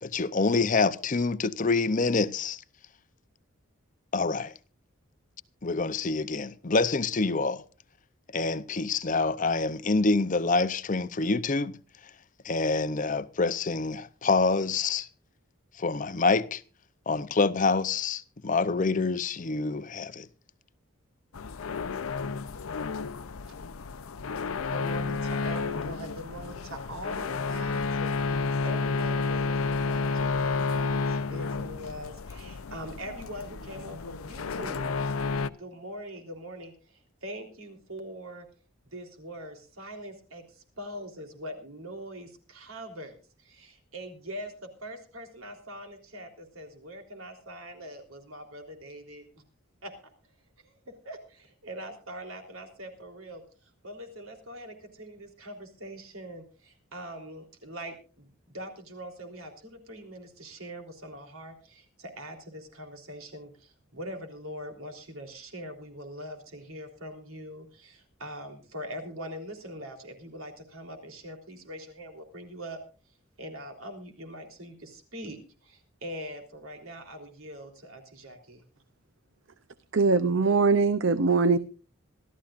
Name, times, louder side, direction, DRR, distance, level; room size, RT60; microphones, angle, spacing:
voice 1, 0.0-2.6 4.1-4.5 5.6-7.6 8.3-11.8 12.4-15.1 15.8-16.6 17.1-20.3, left 3 dB, 40° left, 0.6 m, -26 dB
sound 1, 21.3-35.5, left 4 dB, 85° left, 0.7 m, -31 dB
voice 2, 24.6-35.0 35.5-38.5 38.9-49.3 49.8-49.9 50.6-53.4 53.8-72.8 73.4-78.6, equal, 80° right, 3.6 m, -42 dB
voice 3, 79.9-81.6, right 4 dB, 60° right, 0.6 m, -22 dB
26.5 x 13.0 x 2.5 m
head